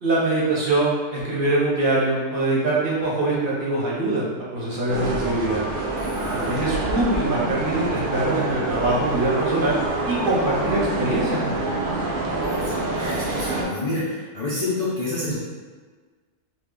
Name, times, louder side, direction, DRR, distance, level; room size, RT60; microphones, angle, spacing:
voice 1, 0.0-5.6 6.3-9.8 10.0-11.9, right 2 dB, 45° right, -6 dB, 0.8 m, -23 dB
sound 1, 4.9-13.7, right 2 dB, 75° right, 0.4 m, -26 dB
voice 2, 6.0-6.7 12.4-15.3, left 2 dB, 75° left, -8 dB, 0.3 m, -29 dB
2.8 x 2.4 x 3.7 m, 1.5 s
omnidirectional pair, 1.5 m